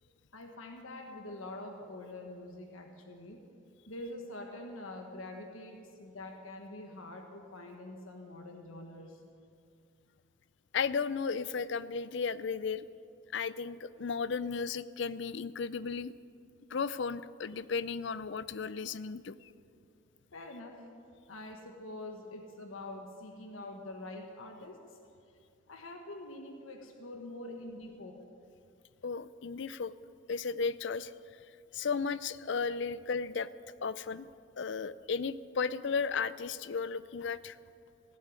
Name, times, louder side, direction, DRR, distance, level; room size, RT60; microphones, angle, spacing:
voice 1, 0.3-3.4 3.9-9.2 20.3-20.9 21.3-25.0 25.7-28.2, left 2 dB, 80° left, 2 dB, 1.4 m, -45 dB
voice 2, 10.7-12.9 13.3-16.1 16.7-19.5 29.0-29.9 30.3-31.1 31.7-33.5 33.8-34.3 34.6-37.6, left 5 dB, 55° left, 16 dB, 0.4 m, -34 dB
16.0 x 7.9 x 9.6 m, 2.5 s
head